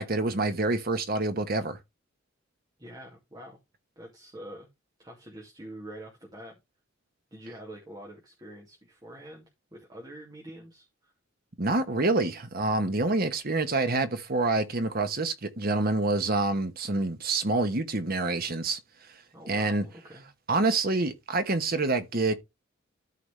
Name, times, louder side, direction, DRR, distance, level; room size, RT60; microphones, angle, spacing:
voice 1, 0.0-1.8 11.6-18.8 19.5-19.8 20.5-22.3, right 2 dB, 50° right, 1.2 m, -27 dB
voice 2, 2.8-3.6 4.0-4.7 5.0-6.6 7.3-11.1 19.3-20.3, right 1 dB, 20° right, 2.3 m, -46 dB
13.5 x 4.9 x 3.4 m
head